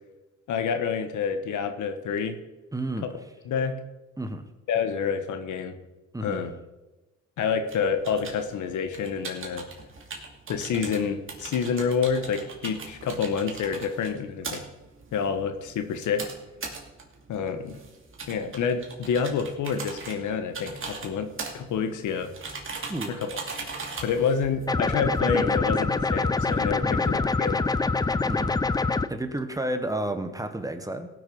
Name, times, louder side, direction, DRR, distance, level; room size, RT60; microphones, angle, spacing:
voice 1, 0.5-2.4 3.4-3.8 4.7-5.8 6.2-6.5 7.4-9.6 10.5-14.6 15.1-16.2 17.3-17.8 18.3-21.3 21.5-22.3 23.1-23.3 24.0-27.6, left 6 dB, 75° left, 8 dB, 1.3 m, -28 dB
voice 2, 2.7-3.1 4.2-4.4 6.1-6.4 22.9-23.2 26.8-27.0 28.2-28.5 29.1-31.1, right 1 dB, 10° right, 7 dB, 1.2 m, -31 dB
sound 1, 7.7-25.2, right 4 dB, 45° right, 2.5 m, -40 dB
sound 2, 24.7-29.1, left 3 dB, 15° left, 0.4 m, -25 dB
17.5 x 6.4 x 5.4 m, 1.1 s
cardioid pair, 90°, 30 cm